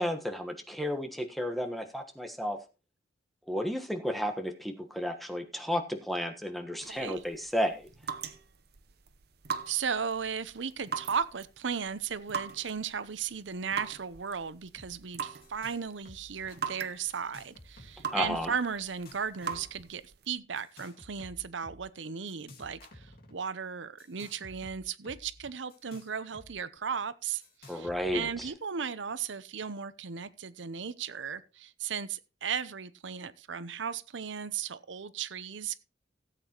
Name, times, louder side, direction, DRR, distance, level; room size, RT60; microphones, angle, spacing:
voice 1, 0.0-2.6 3.5-7.8 18.1-18.5 27.7-28.5, equal, ahead, 1.3 m, -32 dB
voice 2, 6.7-7.2 9.7-35.8, right 6 dB, 85° right, 0.7 m, -36 dB
sound 1, 6.8-20.3, right 6 dB, 60° right, 0.9 m, -42 dB
sound 2, 14.8-14.9 15.2-15.8 16.0-16.6 17.1-18.5 18.8-19.8 20.5-21.8 22.3-23.3 24.0-26.5 26.8-26.9 27.4-28.5, left 1 dB, 55° left, 2.4 m, -52 dB
17.0 x 8.3 x 3.0 m
head